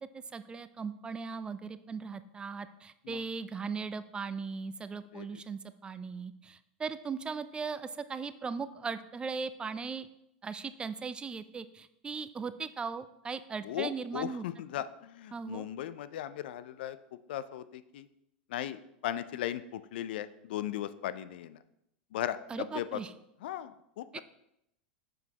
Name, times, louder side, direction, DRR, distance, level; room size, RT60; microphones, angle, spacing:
voice 1, 0.1-10.1 10.4-14.4 15.3-15.6 22.5-23.1 24.1-24.2, right 5 dB, 15° right, 13 dB, 0.3 m, -38 dB
voice 2, 13.6-17.0 17.3-18.1 18.5-21.6 22.1-23.0 23.4-24.2, left 12 dB, 70° left, 14 dB, 0.4 m, -37 dB
6.6 x 6.2 x 2.9 m, 0.80 s
hypercardioid pair, 110°, 6 cm